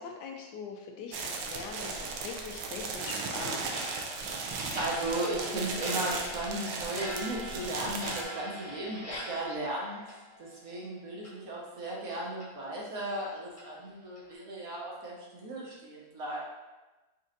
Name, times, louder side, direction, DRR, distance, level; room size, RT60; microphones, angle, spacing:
voice 1, 0.0-3.8, left 5 dB, 75° left, 3 dB, 1.1 m, -42 dB
sound 1, 1.1-8.2, right 4 dB, 85° right, 1.3 m, -36 dB
Clock, 3.7-10.9 11.2-11.3 11.8-11.9 12.4-12.5 13.0-13.1 13.6-13.7 14.1-14.3, equal, 30° left, 0.7 m, -42 dB
voice 2, 4.5-10.0 10.4-16.4, right 1 dB, 60° right, -4 dB, 1.3 m, -36 dB
4.3 x 3.7 x 2.6 m, 1.1 s
omnidirectional pair, 1.9 m